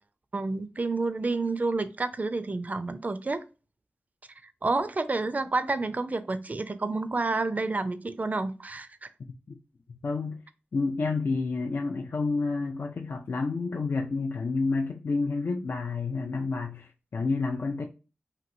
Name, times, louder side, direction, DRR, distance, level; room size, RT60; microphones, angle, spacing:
voice 1, 0.3-3.4 4.4-9.1, right 3 dB, 40° right, 0.4 m, -29 dB
voice 2, 9.9-10.4 10.7-17.8, left 3 dB, 65° left, 0.4 m, -29 dB
3.0 x 2.6 x 2.6 m
cardioid pair, 45°, 4 cm